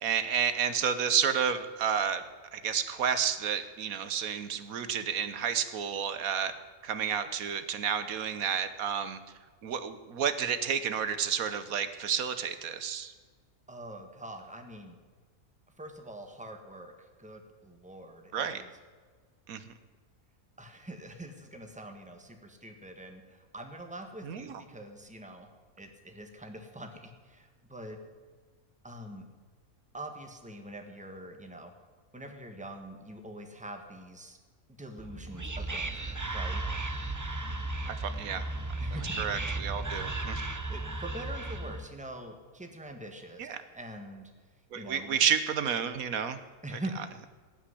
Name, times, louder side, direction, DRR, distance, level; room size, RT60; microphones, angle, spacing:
voice 1, 0.0-2.2 2.5-6.5 6.8-9.2 9.6-13.1 18.3-18.6 19.5-19.7 24.2-24.6 37.9-38.4 39.2-40.5 43.4-43.6 44.7-46.4 46.7-46.8, right 8 dB, 85° right, 11 dB, 1.3 m, -30 dB
voice 2, 13.7-15.0 15.8-18.7 20.6-25.5 25.8-28.0 28.8-29.3 29.9-31.7 32.1-34.4 34.8-36.6 38.8-39.2 40.7-44.3 44.7-45.2 46.6-47.0, right 1 dB, 5° right, 4 dB, 1.5 m, -44 dB
Whispering, 35.0-41.9, right 2 dB, 20° right, 0.5 m, -35 dB
18.0 x 6.1 x 9.8 m, 1.5 s
omnidirectional pair, 1.5 m